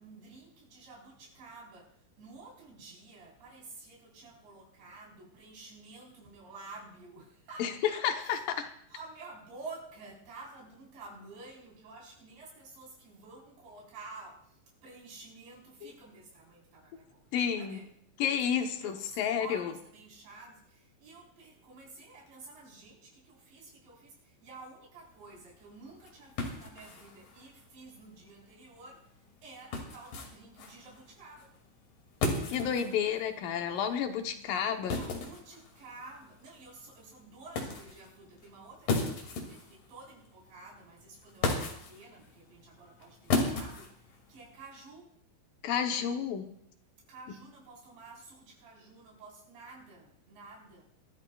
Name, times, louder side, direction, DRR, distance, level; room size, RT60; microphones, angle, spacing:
voice 1, 0.0-8.3 8.9-17.9 18.6-31.6 34.8-45.2 47.1-50.8, right 3 dB, 75° right, -4 dB, 6.3 m, -51 dB
voice 2, 8.0-8.7 15.8-15.9 17.3-17.8 18.2-19.7 32.5-35.0 45.6-46.5, left 8 dB, 75° left, 5 dB, 2.1 m, -31 dB
sound 1, 25.0-44.6, left 3 dB, 55° left, 3.7 m, -38 dB
24.0 x 15.5 x 2.3 m, 0.68 s
omnidirectional pair, 5.1 m